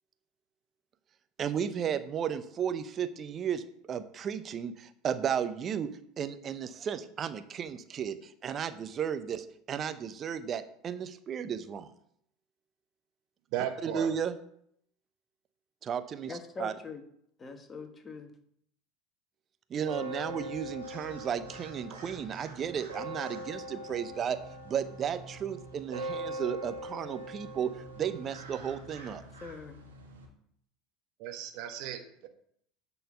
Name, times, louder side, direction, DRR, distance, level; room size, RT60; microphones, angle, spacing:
voice 1, 1.4-3.6 3.9-5.9 6.2-11.9 13.8-14.4 15.8-16.7 19.7-24.4 24.6-29.2, right 8 dB, 40° right, 0.8 m, -34 dB
voice 2, 13.5-14.1 31.2-32.3, right 11 dB, 60° right, 1.3 m, -35 dB
voice 3, 16.3-17.0 17.4-18.3 29.4-29.8, left 3 dB, 25° left, 1.5 m, -42 dB
sound 1, 19.8-30.3, right 1 dB, 85° right, 1.9 m, -42 dB
10.0 x 4.3 x 5.8 m
hypercardioid pair, 75°, 0 cm